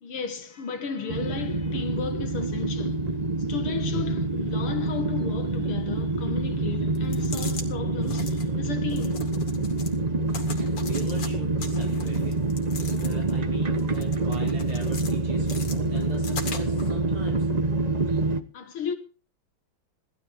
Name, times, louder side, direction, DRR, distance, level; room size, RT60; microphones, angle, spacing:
voice 1, 0.0-9.3 18.5-18.9, left 6 dB, 75° left, 2.4 m, -34 dB
sound 1, 1.1-18.4, right 2 dB, 35° right, 0.7 m, -26 dB
sound 2, 7.0-7.7 8.0-8.5 8.9-10.0 10.3-11.3 11.6-13.4 13.8-15.1 15.5-16.9, left 4 dB, 55° left, 3.1 m, -40 dB
voice 2, 10.6-12.4 13.0-17.5, right 1 dB, 70° right, 5.8 m, -41 dB
19.0 x 13.0 x 3.7 m
omnidirectional pair, 2.4 m